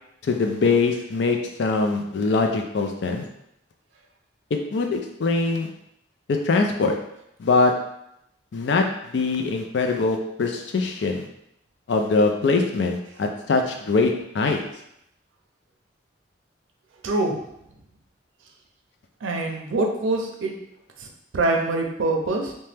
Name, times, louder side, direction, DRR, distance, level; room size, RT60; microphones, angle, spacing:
voice 1, 0.2-3.2 4.7-5.7 6.3-7.0 7.4-7.7 8.5-8.8 9.1-11.3 11.9-14.6, left 3 dB, 65° left, 4 dB, 0.4 m, -22 dB
voice 2, 17.0-17.4 19.2-20.5 21.3-22.5, right 2 dB, 85° right, 2 dB, 0.5 m, -24 dB
2.8 x 2.1 x 3.3 m, 0.78 s
head